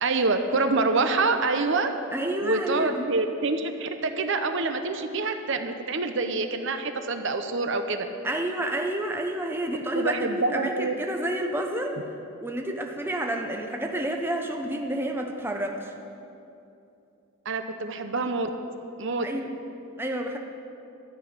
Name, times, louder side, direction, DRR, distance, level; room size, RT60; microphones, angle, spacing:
voice 1, 0.0-1.9 2.4-8.1 9.9-10.9 17.5-18.5 19.0-19.3, right 3 dB, 55° right, 7 dB, 0.7 m, -26 dB
voice 2, 2.1-3.1 8.2-12.0 12.4-15.9 19.2-19.5 20.0-20.4, right 1 dB, 10° right, 2 dB, 0.7 m, -29 dB
13.0 x 6.1 x 8.7 m, 2.7 s
head